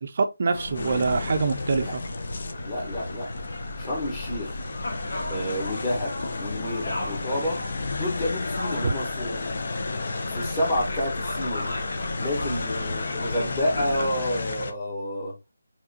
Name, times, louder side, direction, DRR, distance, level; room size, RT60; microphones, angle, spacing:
voice 1, 0.0-2.0 8.8-8.9, right 4 dB, 40° right, 0.5 m, -25 dB
sound 1, 0.5-14.1, left 1 dB, 70° left, 1.4 m, -35 dB
sound 2, 0.7-14.7, left 3 dB, 45° left, 0.6 m, -33 dB
voice 2, 2.6-3.3 3.8-4.6 5.3-7.6 7.9-9.5 10.3-11.7 12.2-15.3, left 1 dB, 20° left, 1.4 m, -29 dB
4.7 x 3.5 x 2.8 m
figure-of-eight pair, 170°, 0 cm